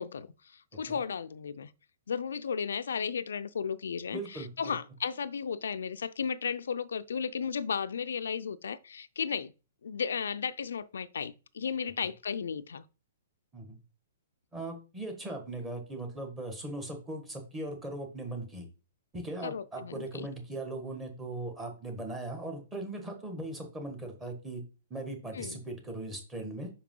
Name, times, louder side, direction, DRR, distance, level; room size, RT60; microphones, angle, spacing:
voice 1, 0.0-1.7 2.1-9.5 9.8-12.8 19.4-20.3 25.3-25.6, left 6 dB, 90° left, 0.4 m, -34 dB
voice 2, 4.1-4.7 13.5-13.8 14.5-18.7 19.1-24.6 24.9-26.7, right 2 dB, 10° right, 1.5 m, -39 dB
5.3 x 4.7 x 3.8 m
hypercardioid pair, 150°, 0 cm